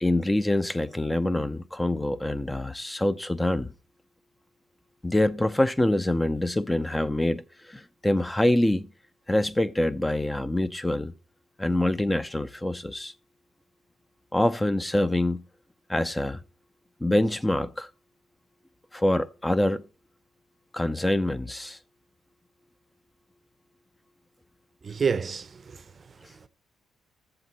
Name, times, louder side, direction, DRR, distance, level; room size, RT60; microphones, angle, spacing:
voice 1, 0.0-3.7 5.0-8.9 9.3-11.1 11.6-13.1 14.3-15.4 15.9-16.4 17.0-17.9 18.9-19.8 20.7-21.8, left 1 dB, 10° left, 0.6 m, -25 dB
voice 2, 24.8-26.5, right 6 dB, 40° right, 0.7 m, -30 dB
13.5 x 7.9 x 4.1 m
cardioid pair, 90°, 0 cm